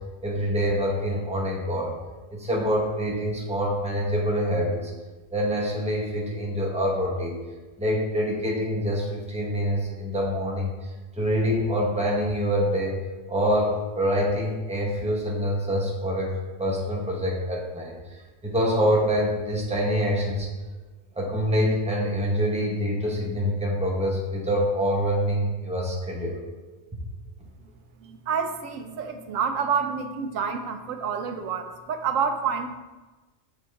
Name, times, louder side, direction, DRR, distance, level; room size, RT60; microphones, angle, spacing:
voice 1, 0.2-1.9 2.3-4.9 5.3-7.4 7.8-10.7 11.2-16.3 16.6-17.9 18.4-20.5 21.1-26.4, equal, 5° right, -3 dB, 0.9 m, -25 dB
voice 2, 28.0-32.7, right 6 dB, 85° right, 7 dB, 1.0 m, -28 dB
6.8 x 4.7 x 3.4 m, 1.2 s
omnidirectional pair, 1.3 m